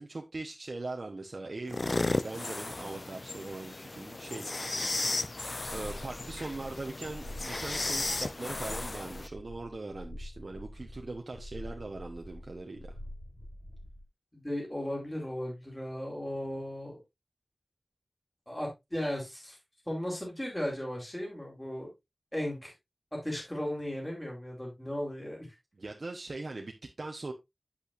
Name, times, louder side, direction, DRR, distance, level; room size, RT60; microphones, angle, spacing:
voice 1, 0.0-1.8 2.2-4.6 5.7-13.0 25.7-27.3, right 2 dB, 70° right, 0.9 m, -40 dB
tobby ronquido, 1.7-9.3, left 2 dB, 55° left, 0.5 m, -35 dB
sound 1, 5.6-14.0, left 1 dB, 80° left, 5.5 m, -45 dB
voice 2, 14.3-17.0 18.5-19.6 19.9-21.9 22.3-22.7 23.1-25.5, left 1 dB, 20° left, 4.0 m, -36 dB
8.4 x 8.4 x 2.5 m
wide cardioid pair, 55°, 0 cm